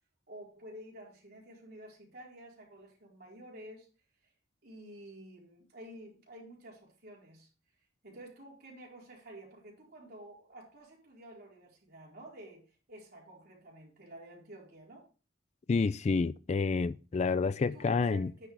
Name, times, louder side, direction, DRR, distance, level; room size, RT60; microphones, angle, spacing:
voice 1, 0.3-3.9 4.6-7.5 8.0-15.1 17.6-18.5, right 1 dB, 55° right, 4.3 m, -51 dB
voice 2, 15.7-18.3, left 4 dB, 35° left, 0.3 m, -29 dB
9.9 x 6.5 x 3.4 m
head